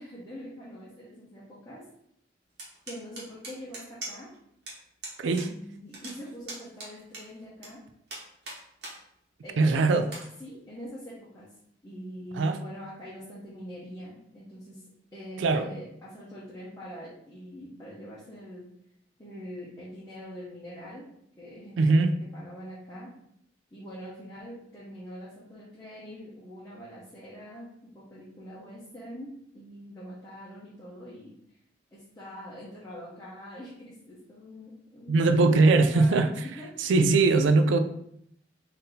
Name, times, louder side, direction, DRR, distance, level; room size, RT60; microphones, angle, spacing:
voice 1, 0.0-1.8 2.9-4.3 5.3-7.8 9.4-10.0 10.4-11.5 11.8-18.6 19.2-21.1 21.4-22.0 22.3-23.1 23.7-31.3 31.9-36.3 36.6-36.9 37.4-37.6, equal, 20° left, -9 dB, 0.8 m, -43 dB
sound 1, 2.6-4.4 4.7-4.8 5.0-5.5 5.7-7.7 8.1-9.0 9.4-9.5 10.0-10.2, right 2 dB, 60° right, 1.2 m, -40 dB
voice 2, 9.6-10.1 12.4-12.6 15.4-15.7 21.8-22.1 35.1-36.3 36.8-37.8, right 3 dB, 85° right, 8 dB, 0.4 m, -21 dB
3.6 x 2.8 x 3.8 m, 0.73 s
head